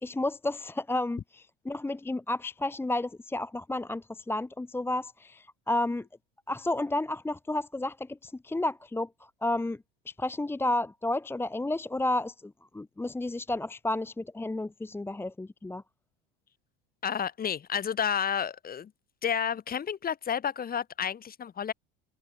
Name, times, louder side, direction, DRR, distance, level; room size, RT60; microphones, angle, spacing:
voice 1, 0.0-6.1 6.5-9.8 10.1-15.8, left 2 dB, 10° left, 1.1 m, -32 dB
voice 2, 17.0-18.9 19.2-21.7, left 8 dB, 30° left, 4.2 m, -31 dB
open air
supercardioid pair, 110°, 29 cm